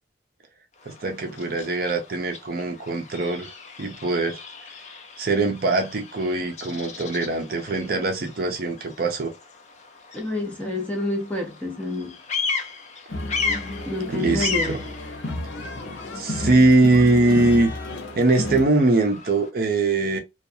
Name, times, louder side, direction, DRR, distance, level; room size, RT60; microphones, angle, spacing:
Bird vocalization bird call bird song, 0.7-19.5, left 5 dB, 40° left, 0.5 m, -36 dB
voice 1, 0.9-3.5 3.8-4.4 5.2-9.3 14.1-14.8 16.2-17.7 18.2-20.2, right 2 dB, 50° right, 0.6 m, -22 dB
voice 2, 10.1-12.1 13.9-14.8, left 1 dB, 10° left, 0.8 m, -28 dB
sound 1, 13.1-18.7, left 1 dB, 80° left, 0.7 m, -32 dB
2.5 x 2.3 x 2.6 m
head